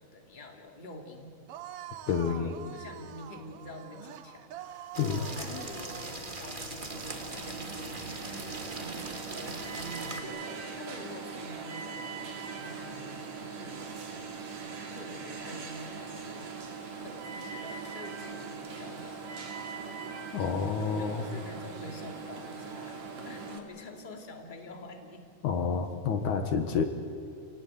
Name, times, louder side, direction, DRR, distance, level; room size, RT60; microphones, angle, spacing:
voice 1, 0.0-1.4 2.1-9.4 10.2-14.4 14.9-19.9 20.8-25.3, left 2 dB, 15° left, 3 dB, 2.4 m, -47 dB
sound 1, 1.5-6.4, right 11 dB, 80° right, 1.3 m, -45 dB
voice 2, 2.1-2.5 5.0-5.2 20.3-21.2 25.4-26.8, left 6 dB, 70° left, 7 dB, 2.7 m, -29 dB
sound 2, 4.9-10.2, right 2 dB, 20° right, 1.5 m, -41 dB
Alarm, 6.9-23.6, right 5 dB, 60° right, 3.7 m, -41 dB
28.5 x 18.5 x 9.2 m, 2.6 s
omnidirectional pair, 3.7 m